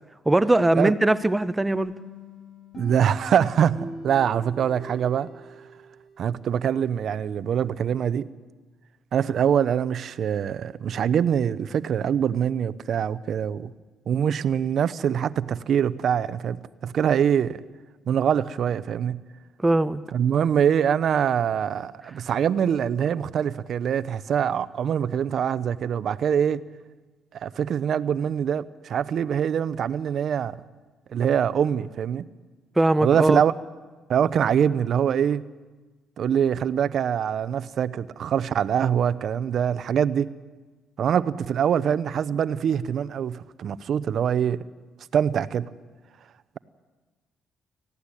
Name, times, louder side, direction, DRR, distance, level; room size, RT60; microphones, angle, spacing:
voice 1, 0.3-1.9 19.6-20.0 32.8-33.4, right 2 dB, 15° right, 13 dB, 0.7 m, -20 dB
sound 1, 1.7-6.4, equal, 55° left, 6.9 m, -42 dB
voice 2, 2.8-5.3 6.2-8.3 9.1-13.7 14.1-17.6 18.1-19.2 20.1-26.6 27.4-30.6 31.1-32.2 33.0-33.5 34.1-35.4 36.2-40.3 41.0-44.6 45.1-45.7, right 8 dB, 65° right, 16 dB, 0.7 m, -24 dB
18.5 x 15.0 x 9.9 m, 1.3 s
cardioid pair, 90°, 0 cm